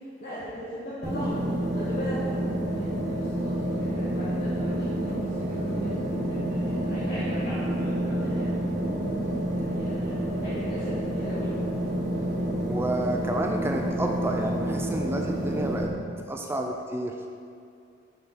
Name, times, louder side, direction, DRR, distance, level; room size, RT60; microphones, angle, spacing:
voice 1, 0.2-1.4 1.7-2.2 2.6-8.5 9.5-11.5, equal, 50° left, -12 dB, 1.6 m, -39 dB
sound 1, 1.0-15.8, right 1 dB, 40° right, 1.2 m, -29 dB
voice 2, 12.6-16.0 16.3-17.3, right 1 dB, 15° right, 2 dB, 0.4 m, -30 dB
7.0 x 6.4 x 4.1 m, 2.3 s
head